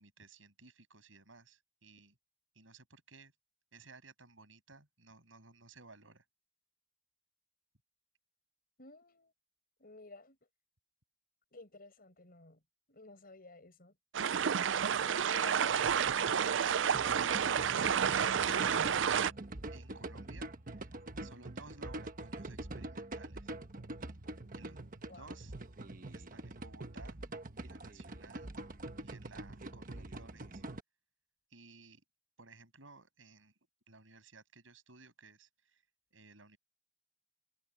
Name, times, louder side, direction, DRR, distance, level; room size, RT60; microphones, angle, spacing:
voice 1, 0.0-2.2 2.5-3.3 3.7-6.2 19.7-20.9 21.2-23.5 24.6-24.8 25.1-25.5 26.1-27.2 27.6-28.5 29.0-30.6 31.5-32.0 32.4-33.5 33.9-35.8 36.1-36.6, right 3 dB, 85° right, 7.6 m, -57 dB
voice 2, 8.8-9.3 9.8-10.4 11.5-12.6 12.9-13.9 15.3-15.8 25.1-25.3, left 2 dB, 50° left, 6.2 m, -53 dB
sound 1, 14.1-19.3, right 7 dB, 70° right, 0.5 m, -30 dB
sound 2, 16.9-30.8, right 2 dB, 45° right, 1.2 m, -44 dB
head